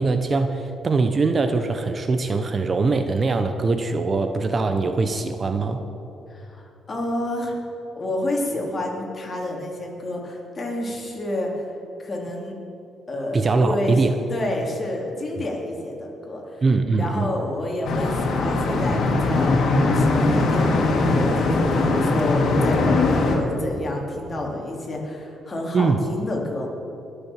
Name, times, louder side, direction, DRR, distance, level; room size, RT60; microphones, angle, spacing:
voice 1, 0.0-5.8 13.3-14.2 16.6-17.4 25.7-26.0, right 3 dB, 35° right, 8 dB, 0.9 m, -22 dB
voice 2, 6.3-7.5 7.9-11.6 12.0-12.5 13.1-14.0 14.3-16.6 17.0-19.5 19.9-26.7, left 1 dB, 30° left, -1 dB, 3.5 m, -29 dB
sound 1, 17.8-23.4, left 3 dB, 65° left, 2.4 m, -20 dB
20.5 x 7.0 x 7.4 m, 2.9 s
cardioid pair, 90°, 0 cm